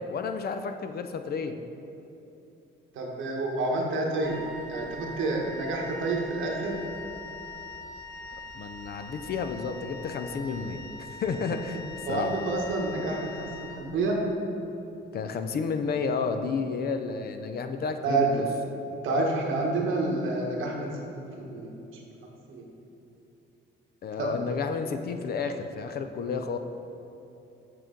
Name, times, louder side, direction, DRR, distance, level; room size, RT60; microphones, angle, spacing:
voice 1, 0.0-1.6 8.5-11.8 12.1-12.3 15.1-18.5 24.0-26.6, left 5 dB, 50° left, 8 dB, 0.5 m, -31 dB
voice 2, 2.9-4.4 4.7-6.8 12.1-14.2 18.0-18.3 19.0-20.9 21.2-21.7 22.5-22.6 24.2-24.3, right 3 dB, 80° right, -1 dB, 1.2 m, -28 dB
Wind instrument woodwind instrument, 4.2-14.3, left 1 dB, 60° right, 0.9 m, -42 dB
7.6 x 4.5 x 3.8 m, 2.9 s
cardioid pair, 90°, 20 cm